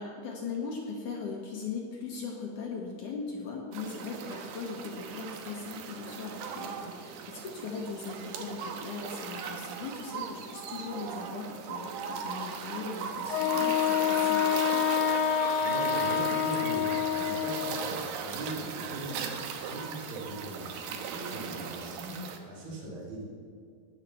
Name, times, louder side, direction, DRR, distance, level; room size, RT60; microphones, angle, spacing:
voice 1, 0.0-14.9, left 4 dB, 60° left, 0 dB, 2.6 m, -39 dB
sound 1, 3.7-22.4, right 6 dB, 80° right, 3.1 m, -38 dB
Wind instrument woodwind instrument, 13.3-17.9, left 10 dB, 85° left, 2.6 m, -27 dB
voice 2, 15.6-23.2, right 2 dB, 60° right, -4 dB, 4.7 m, -40 dB
19.5 x 7.5 x 7.2 m, 2.2 s
omnidirectional pair, 4.7 m